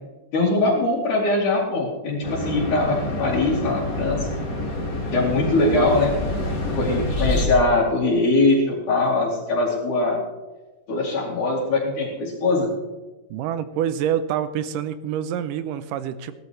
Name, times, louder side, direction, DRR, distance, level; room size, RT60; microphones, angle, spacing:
voice 1, 0.3-4.3 5.1-6.2 6.8-10.2 10.9-12.7, left 2 dB, 65° left, -7 dB, 3.9 m, -21 dB
sound 1, 2.2-7.5, left 1 dB, 30° left, 2.1 m, -27 dB
voice 2, 13.3-16.4, right 9 dB, 80° right, 13 dB, 2.2 m, -26 dB
18.0 x 13.0 x 3.2 m, 1.2 s
omnidirectional pair, 4.0 m